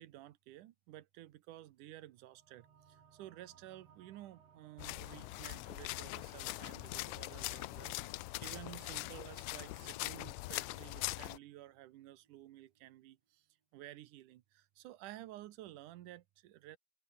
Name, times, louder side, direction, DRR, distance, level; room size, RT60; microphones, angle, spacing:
voice 1, 0.0-13.5 13.7-16.8, right 14 dB, 80° right, 2.5 m, -53 dB
sound 1, 2.2-13.1, right 7 dB, 55° right, 3.6 m, -65 dB
sound 2, 4.8-11.4, left 21 dB, 85° left, 1.6 m, -42 dB
open air
omnidirectional pair, 3.6 m